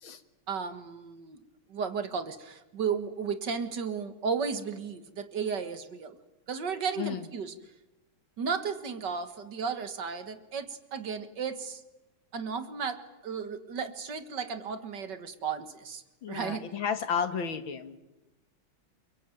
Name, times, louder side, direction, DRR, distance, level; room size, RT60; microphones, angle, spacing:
voice 1, 0.5-6.2 6.5-7.5 8.4-11.8 12.3-16.0 16.3-16.7, right 6 dB, 55° right, 10 dB, 2.2 m, -34 dB
voice 2, 16.2-18.0, left 6 dB, 70° left, 10 dB, 2.4 m, -32 dB
28.5 x 22.5 x 9.2 m, 0.99 s
omnidirectional pair, 2.3 m